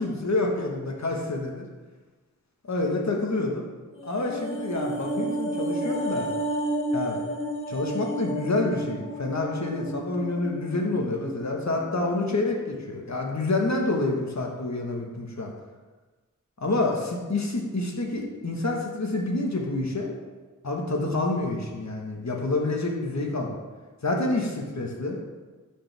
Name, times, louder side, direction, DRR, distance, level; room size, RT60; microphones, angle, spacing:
voice 1, 0.0-1.7 2.6-3.7 4.0-6.3 6.9-7.2 7.7-15.5 16.6-20.1 20.6-23.5 24.0-25.2, left 2 dB, 55° left, 0 dB, 1.5 m, -28 dB
sound 1, 3.9-12.4 12.7-12.8, right 1 dB, 40° left, 1.7 m, -32 dB
12.0 x 5.0 x 3.5 m, 1.3 s
wide cardioid pair, 70°, 33 cm